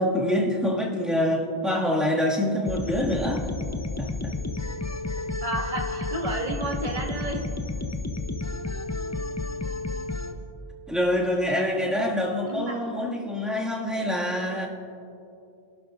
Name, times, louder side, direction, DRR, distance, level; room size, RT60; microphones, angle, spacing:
voice 1, 0.0-3.5 4.0-4.3 10.9-14.7, left 1 dB, ahead, -4 dB, 1.8 m, -26 dB
sound 1, 2.6-10.3, left 2 dB, 20° left, 0.5 m, -31 dB
voice 2, 5.4-7.4 12.4-12.7, right 1 dB, 45° right, -1 dB, 2.0 m, -31 dB
27.0 x 11.5 x 2.5 m, 2.6 s
omnidirectional pair, 1.1 m